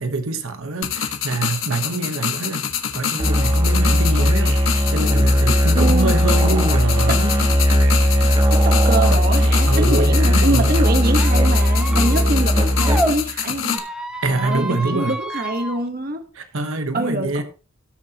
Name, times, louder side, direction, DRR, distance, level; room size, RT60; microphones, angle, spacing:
voice 1, 0.0-2.7 2.9-7.4 9.7-10.7 14.2-15.1 16.4-17.4, right 2 dB, 70° right, 1.1 m, -25 dB
sound 1, 0.8-13.8, left 8 dB, 65° left, 1.4 m, -27 dB
Musical instrument, 3.2-13.3, equal, 25° right, 1.6 m, -17 dB
voice 2, 5.7-6.2 7.1-7.2 8.5-13.8 14.3-16.2 16.9-17.4, right 2 dB, 45° right, 1.2 m, -24 dB
Squeak, 11.1-13.1 13.7-15.8, right 1 dB, 5° right, 0.9 m, -29 dB
17.5 x 6.8 x 2.9 m
head